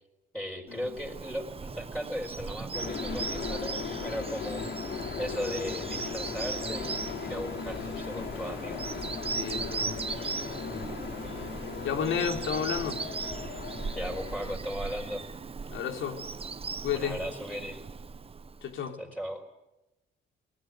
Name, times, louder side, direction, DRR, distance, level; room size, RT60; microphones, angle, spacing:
voice 1, 0.3-4.7 5.2-8.8 13.9-15.2 16.9-17.8 19.0-19.4, equal, 5° left, 4.7 m, -37 dB
Bird vocalization bird call bird song, 0.8-18.8, right 5 dB, 30° right, 1.1 m, -38 dB
sound 1, 2.7-14.6, left 5 dB, 60° left, 3.5 m, -37 dB
voice 2, 9.3-10.0 10.6-10.9 11.8-13.0 15.7-16.2 16.8-17.2 18.6-19.0, left 7 dB, 80° left, 3.4 m, -32 dB
25.5 x 19.0 x 9.1 m
cardioid pair, 90°, 20 cm